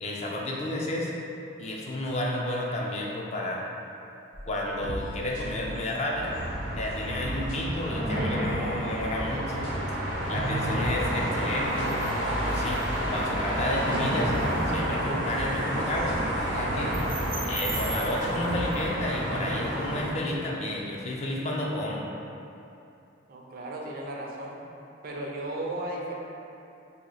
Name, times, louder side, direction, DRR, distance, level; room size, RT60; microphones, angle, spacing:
voice 1, 0.0-1.1 1.6-3.6 4.5-6.4 6.7-9.7 10.3-11.9 12.4-12.8 13.1-14.3 14.7-17.0 17.4-22.0, left 1 dB, 35° left, -2 dB, 0.4 m, -31 dB
sound 1, 4.3-8.7 9.6-10.0 10.4-12.2 12.6-12.7 13.9-18.9, equal, 75° left, 1.2 m, -40 dB
sound 2, 6.2-20.1, right 1 dB, 90° right, 0.7 m, -29 dB
voice 2, 23.3-24.6 25.0-26.1, right 1 dB, 50° right, -2 dB, 0.4 m, -35 dB
2.8 x 2.7 x 4.0 m, 2.8 s
head